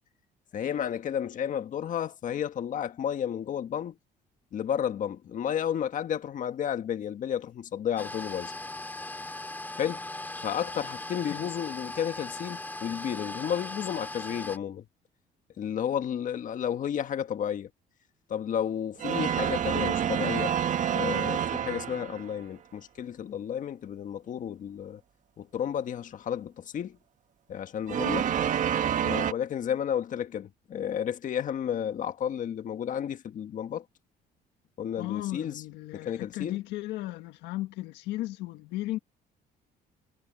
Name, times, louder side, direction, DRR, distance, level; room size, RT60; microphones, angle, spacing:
voice 1, 0.5-3.9 4.5-8.5 9.7-10.0 10.4-14.8 15.6-17.7 18.3-20.5 20.9-25.0 25.4-27.0 27.5-28.3 29.0-33.8 34.8-35.6 35.9-36.6, left 9 dB, 50° left, 1.6 m, -32 dB
sound 1, 8.0-14.6, left 2 dB, 10° left, 2.5 m, -39 dB
sound 2, 19.0-22.4 27.9-29.3, right 9 dB, 50° right, 1.2 m, -28 dB
voice 2, 35.0-39.0, left 16 dB, 90° left, 1.5 m, -35 dB
cardioid pair, 110°, 17 cm